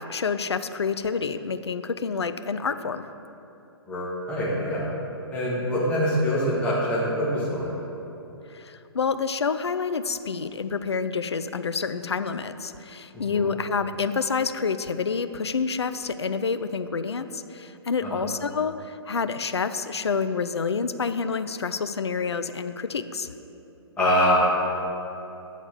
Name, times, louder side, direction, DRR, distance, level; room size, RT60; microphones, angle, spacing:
voice 1, 0.0-3.1 8.5-23.3, left 5 dB, 70° left, 11 dB, 0.4 m, -28 dB
voice 2, 3.9-4.9 5.3-7.8 13.1-13.4 18.0-18.1 24.0-24.5, equal, 10° left, -9 dB, 1.6 m, -24 dB
8.7 x 4.1 x 6.8 m, 2.9 s
figure-of-eight pair, 120°, 14 cm